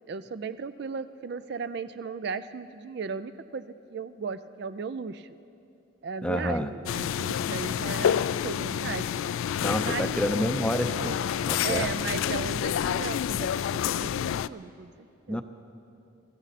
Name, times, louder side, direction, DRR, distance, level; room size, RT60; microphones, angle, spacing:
voice 1, 0.1-5.3 6.0-9.1 9.8-10.2 11.6-14.9 15.3-15.4, right 5 dB, 55° right, 13 dB, 0.4 m, -36 dB
voice 2, 6.2-6.7 9.6-11.2 11.5-11.9 15.3-15.4, left 1 dB, 5° left, 7 dB, 0.6 m, -28 dB
sound 1, 6.9-14.5, left 9 dB, 80° left, 0.3 m, -28 dB
24.5 x 14.0 x 4.1 m, 2.7 s
head